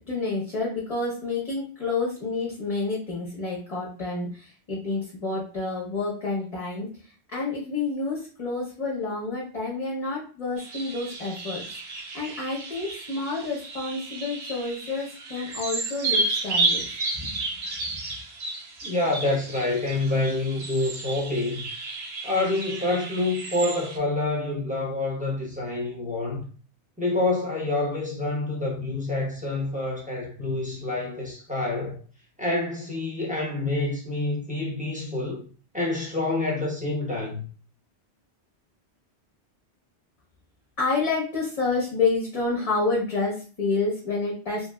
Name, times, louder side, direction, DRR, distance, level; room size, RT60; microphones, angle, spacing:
voice 1, 0.1-6.9 7.3-17.4 17.9-18.0 40.8-44.7, left 3 dB, 35° left, 0.7 m, -29 dB
sound 1, 10.6-24.0, right 3 dB, 70° right, 1.0 m, -32 dB
voice 2, 18.8-21.6 22.2-26.4 27.0-32.0 32.4-35.4 35.7-37.4, left 2 dB, 10° right, 0.7 m, -27 dB
3.0 x 2.8 x 2.2 m
omnidirectional pair, 1.2 m